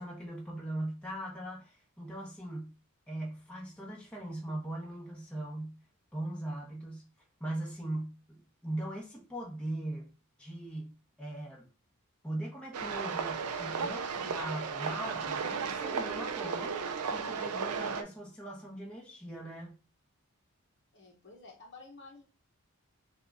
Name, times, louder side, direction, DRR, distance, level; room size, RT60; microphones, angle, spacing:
voice 1, 0.0-2.7 3.1-5.8 6.1-7.0 7.4-10.1 10.4-10.9 11.2-11.7 12.2-16.7 17.1-19.7, right 1 dB, 5° left, -3 dB, 1.1 m, -40 dB
sound 1, 12.7-18.0, right 5 dB, 90° right, 0.5 m, -34 dB
voice 2, 20.9-22.2, left 3 dB, 50° left, 1 dB, 0.9 m, -51 dB
6.6 x 2.4 x 2.6 m, 0.32 s
head